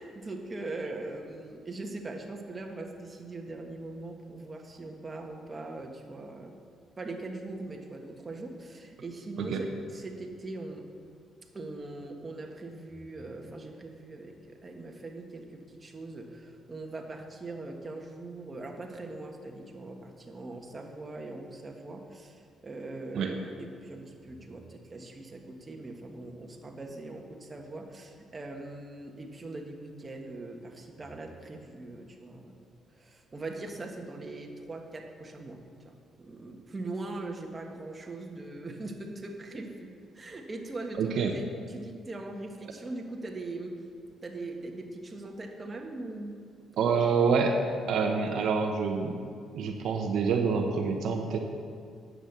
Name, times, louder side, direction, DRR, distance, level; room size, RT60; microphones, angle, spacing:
voice 1, 0.0-6.5 7.0-10.9 11.5-32.6 33.0-35.6 35.8-43.7 44.2-46.4 46.9-47.0, right 2 dB, 30° right, 2 dB, 1.5 m, -41 dB
voice 2, 41.0-41.3 46.8-47.6 47.9-49.2 49.5-51.4, right 5 dB, 75° right, 3 dB, 1.0 m, -27 dB
10.0 x 7.8 x 6.8 m, 2.2 s
cardioid pair, 90°, 0 cm